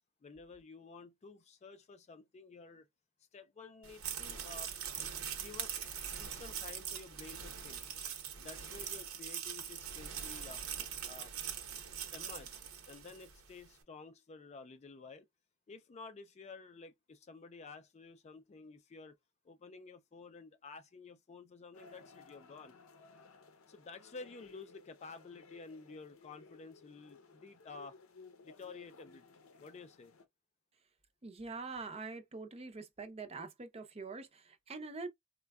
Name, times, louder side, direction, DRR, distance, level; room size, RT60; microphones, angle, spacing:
voice 1, 0.2-2.9 3.3-4.7 5.2-5.7 6.0-7.8 8.4-10.6 11.1-11.3 12.1-15.3 15.7-19.2 19.4-22.8 23.7-28.0 28.4-29.3 29.6-30.1, left 4 dB, 30° left, 0.4 m, -52 dB
sound 1, 3.8-13.4, right 8 dB, 70° right, 0.9 m, -42 dB
sound 2, 21.7-30.2, left 4 dB, 70° left, 0.6 m, -59 dB
voice 2, 31.2-35.1, right 4 dB, 30° right, 0.5 m, -44 dB
4.3 x 2.2 x 2.3 m
head